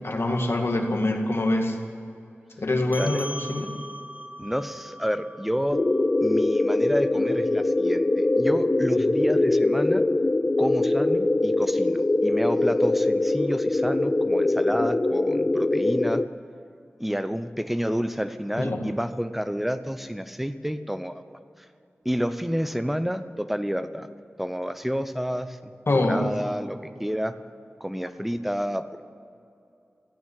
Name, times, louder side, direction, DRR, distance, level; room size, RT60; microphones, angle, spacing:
voice 1, 0.0-1.8 2.6-3.7 18.6-18.8 25.9-26.5, left 2 dB, 60° left, 3 dB, 2.1 m, -25 dB
voice 2, 2.9-3.2 4.4-5.8 6.2-10.0 10.6-16.2 17.0-21.2 22.0-24.1 24.4-25.6 25.9-27.3 27.8-29.0, equal, 5° right, 10 dB, 0.9 m, -29 dB
sound 1, 2.9-7.7, equal, 35° right, 2.0 m, -41 dB
sound 2, 5.7-16.3, left 2 dB, 25° left, 0.4 m, -23 dB
15.0 x 9.4 x 9.5 m, 2.6 s
wide cardioid pair, 65°, 5 cm